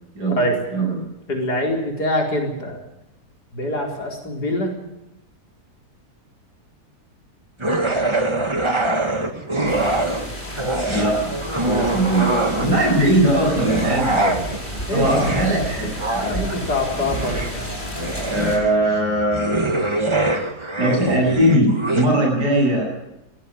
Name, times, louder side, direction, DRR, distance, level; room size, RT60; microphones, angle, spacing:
voice 1, 0.1-1.1 10.9-11.4 11.6-14.4 14.9-16.6 16.9-17.1 18.3-19.6 20.8-22.9, right 1 dB, 85° right, 0 dB, 8.7 m, -20 dB
voice 2, 1.3-2.8 3.5-4.7 14.9-15.1 16.2-17.7, left 1 dB, 80° left, 1 dB, 5.1 m, -24 dB
sound 1, 7.6-10.3 10.6-12.9 13.5-22.1, right 2 dB, 20° right, 1.7 m, -24 dB
sound 2, 9.7-18.6, left 1 dB, 30° left, 4.3 m, -32 dB
19.0 x 15.5 x 9.8 m, 0.90 s
omnidirectional pair, 1.7 m